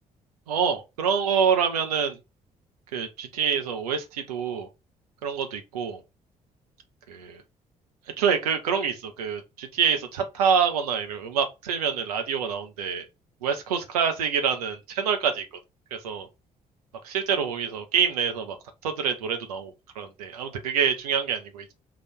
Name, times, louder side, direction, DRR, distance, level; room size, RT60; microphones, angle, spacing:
voice 1, 0.5-2.2 2.9-4.7 5.2-6.0 7.1-7.4 8.2-13.0 13.4-15.5 15.9-16.3 17.0-18.6 18.8-21.7, right 7 dB, 75° right, 0.7 m, -26 dB
3.8 x 2.5 x 4.4 m
figure-of-eight pair, 45°, 19 cm